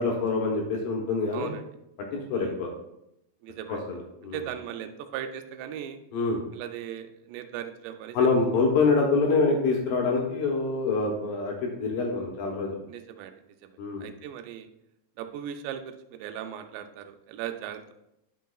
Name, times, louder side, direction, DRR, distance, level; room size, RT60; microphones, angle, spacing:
voice 1, 0.0-1.5 2.1-2.7 3.7-4.4 6.1-6.4 8.1-12.8 13.8-14.1, left 3 dB, 80° left, 0 dB, 2.1 m, -25 dB
voice 2, 3.4-3.8 4.3-6.0 6.5-8.3 12.9-13.3 13.6-14.7 15.2-17.9, right 10 dB, 80° right, 7 dB, 2.7 m, -38 dB
10.5 x 5.4 x 2.3 m, 0.82 s
omnidirectional pair, 5.1 m